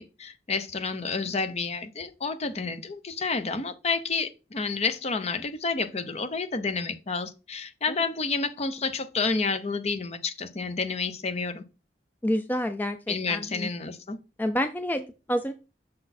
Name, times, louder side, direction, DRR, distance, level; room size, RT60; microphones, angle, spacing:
voice 1, 0.0-11.6 13.1-14.2, left 4 dB, 35° left, 0.7 m, -30 dB
voice 2, 12.2-13.7 14.4-15.5, equal, 10° left, 0.3 m, -28 dB
6.5 x 4.0 x 4.2 m
head